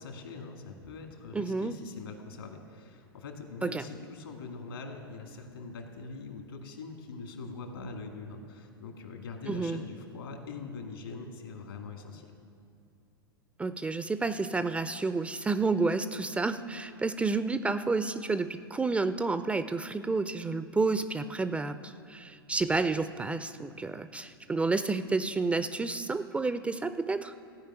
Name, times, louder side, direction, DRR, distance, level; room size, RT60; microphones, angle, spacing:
voice 1, 0.0-12.3, left 4 dB, 75° left, 3 dB, 2.2 m, -43 dB
voice 2, 1.3-1.8 3.6-3.8 9.5-9.8 13.6-27.3, right 3 dB, 10° right, 12 dB, 0.4 m, -30 dB
15.0 x 5.4 x 8.9 m, 2.3 s
hypercardioid pair, 100°, 12 cm